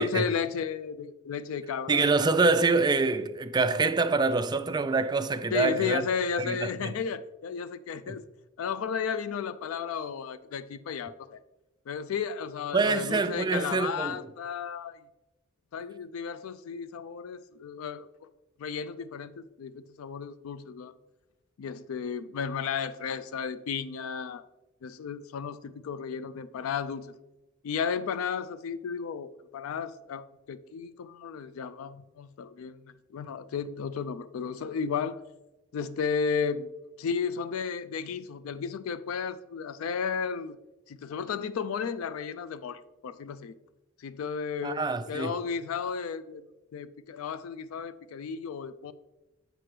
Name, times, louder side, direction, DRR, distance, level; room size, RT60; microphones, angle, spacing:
voice 1, 0.0-2.1 5.5-8.2 8.6-11.4 11.9-15.0 15.7-18.1 18.6-20.9 21.6-24.4 24.8-27.1 27.6-35.2 35.7-36.7 37.0-40.6 40.9-43.5 44.0-46.4 46.7-48.9, left 6 dB, 90° left, 0.4 m, -33 dB
voice 2, 1.9-6.0 6.4-6.9 8.1-8.2 12.7-14.2 44.6-45.3, right 3 dB, 20° right, 0.4 m, -25 dB
7.8 x 6.0 x 3.2 m
head